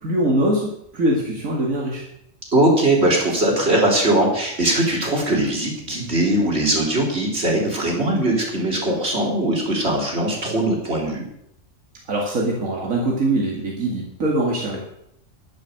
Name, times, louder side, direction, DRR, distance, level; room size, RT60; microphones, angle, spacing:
voice 1, 0.0-2.0 12.1-14.8, right 1 dB, 85° right, -2 dB, 2.7 m, -22 dB
voice 2, 2.5-11.3, right 1 dB, 50° right, -1 dB, 4.2 m, -20 dB
12.5 x 10.5 x 6.8 m, 0.75 s
omnidirectional pair, 1.4 m